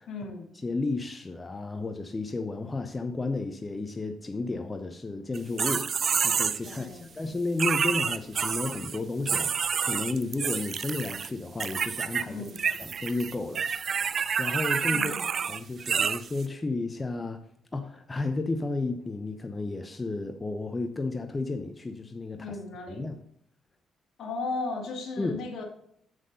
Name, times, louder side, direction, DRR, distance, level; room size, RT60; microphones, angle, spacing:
voice 1, 0.1-0.5 6.6-7.1 12.3-12.6 14.9-15.3 22.4-23.1 24.2-25.6, left 3 dB, 65° left, 2.1 m, -36 dB
voice 2, 0.6-13.7 14.1-15.2 15.5-17.4 17.7-22.6 22.9-23.2 25.2-25.4, left 3 dB, 25° left, 0.8 m, -33 dB
sound 1, 5.3-6.8 7.6-9.0 9.2-11.3 11.6-12.2 12.5-16.4, right 7 dB, 50° right, 0.4 m, -28 dB
7.5 x 6.3 x 5.3 m
cardioid pair, 90°, 0 cm